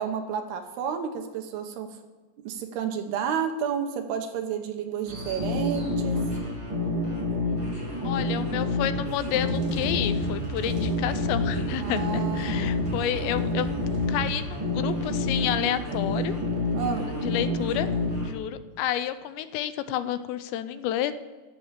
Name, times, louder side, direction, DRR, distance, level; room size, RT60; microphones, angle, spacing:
voice 1, 0.0-1.9 2.4-6.2 11.8-12.8 16.7-17.0, right 7 dB, 75° right, 5 dB, 2.8 m, -31 dB
sound 1, 5.1-18.3, left 2 dB, 10° right, 2.0 m, -28 dB
voice 2, 8.0-13.7 14.1-16.3 17.2-17.9 18.2-21.1, left 11 dB, 85° left, 12 dB, 2.8 m, -30 dB
sample toms, 9.0-15.0, right 4 dB, 50° right, 2.9 m, -37 dB
14.5 x 6.8 x 7.4 m, 1.3 s
omnidirectional pair, 5.1 m